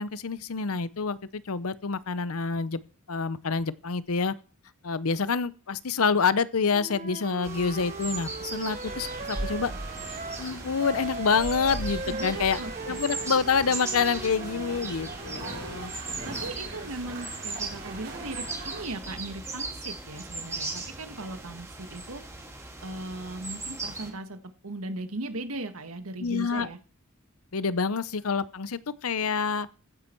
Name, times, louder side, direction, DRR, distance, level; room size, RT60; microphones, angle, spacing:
voice 1, 0.0-2.8 3.1-4.3 4.8-9.7 10.4-12.6 12.9-15.9 26.2-26.7 27.5-29.7, left 5 dB, 80° left, 0.7 m, -27 dB
Wind instrument woodwind instrument, 6.7-10.5 10.8-14.8, right 3 dB, 35° right, 0.7 m, -39 dB
sound 1, 7.4-24.1, right 3 dB, 15° right, 2.4 m, -39 dB
sound 2, 8.8-18.8, right 1 dB, 50° right, 7.0 m, -40 dB
voice 2, 12.1-13.0 16.2-22.2 22.8-26.8, right 2 dB, 80° right, 1.7 m, -38 dB
15.5 x 9.9 x 4.6 m
head